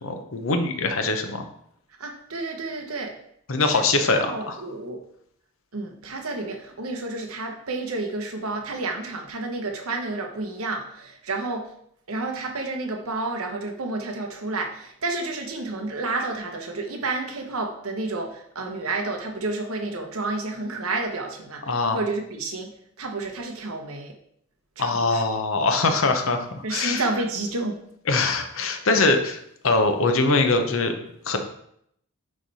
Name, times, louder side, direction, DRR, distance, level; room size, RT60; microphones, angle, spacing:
voice 1, 0.0-1.5 3.5-4.5 21.7-22.0 24.8-27.0 28.1-29.4 29.6-30.9 31.3-31.4, left 3 dB, 60° left, 6 dB, 0.8 m, -22 dB
voice 2, 2.0-3.1 3.6-3.8 4.1-5.0 5.7-11.7 12.1-22.7 23.0-24.1 24.8-25.2 26.6-27.8, right 3 dB, 70° right, 3 dB, 1.1 m, -30 dB
9.7 x 3.3 x 4.1 m, 0.72 s
head